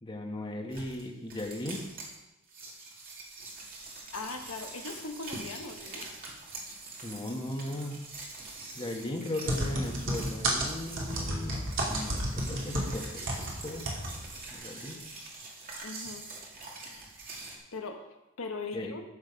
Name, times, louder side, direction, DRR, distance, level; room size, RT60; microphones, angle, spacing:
voice 1, 0.0-1.8 7.0-8.0 8.7-13.9 14.5-15.0 18.7-18.9, left 1 dB, 25° left, 1 dB, 1.4 m, -37 dB
sound 1, 0.7-2.2 2.5-17.6, right 3 dB, 45° right, 2.4 m, -45 dB
voice 2, 4.1-6.1 15.8-16.2 17.7-18.0 18.4-19.0, left 3 dB, 75° left, 4 dB, 1.1 m, -39 dB
sound 2, 9.5-13.5 13.9-14.1 14.4-14.5, right 1 dB, 60° right, 2.8 m, -31 dB
13.5 x 6.4 x 5.1 m, 0.98 s
head